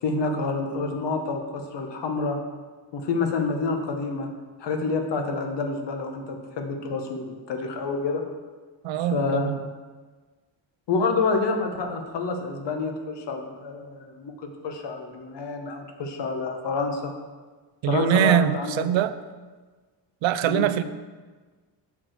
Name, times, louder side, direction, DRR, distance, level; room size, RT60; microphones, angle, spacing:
voice 1, 0.0-2.4 2.9-4.3 4.6-8.2 9.1-9.5 10.9-17.1 17.8-18.9 20.4-20.7, left 4 dB, 65° left, 4 dB, 1.2 m, -28 dB
voice 2, 8.8-9.6 17.8-19.1 20.2-20.8, right 11 dB, 85° right, 12 dB, 0.6 m, -23 dB
7.2 x 4.7 x 6.5 m, 1.4 s
cardioid pair, 140°, 45 cm